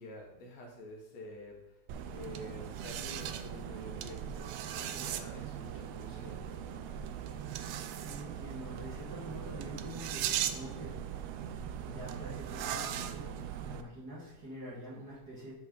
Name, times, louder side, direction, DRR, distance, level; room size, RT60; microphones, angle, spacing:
voice 1, 0.0-1.8 2.1-6.9, left 1 dB, 65° left, 0 dB, 2.5 m, -48 dB
sound 1, 1.9-13.8, right 9 dB, 85° right, 1.4 m, -39 dB
voice 2, 8.0-11.0 11.8-13.3 13.6-15.5, equal, 40° right, -7 dB, 1.7 m, -45 dB
7.6 x 4.7 x 5.4 m, 0.95 s
omnidirectional pair, 3.4 m